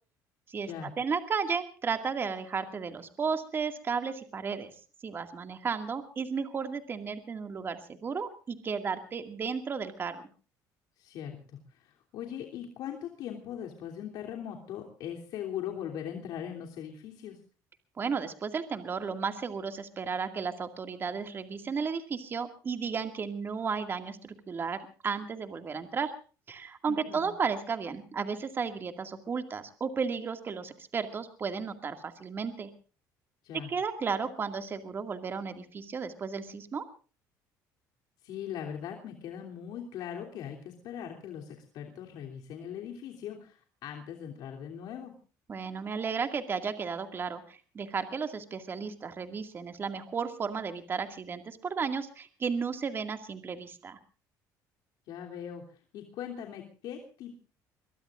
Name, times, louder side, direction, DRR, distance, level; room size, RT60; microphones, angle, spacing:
voice 1, 0.5-4.7 5.0-10.2 18.0-26.1 26.5-32.7 33.7-36.8 45.5-54.0, right 5 dB, 30° right, 7 dB, 2.1 m, -34 dB
voice 2, 11.0-17.4 26.9-27.3 33.4-33.7 38.2-45.1 55.1-57.3, left 9 dB, 70° left, 2 dB, 3.1 m, -40 dB
23.5 x 22.0 x 2.5 m, 0.38 s
cardioid pair, 125°, 7 cm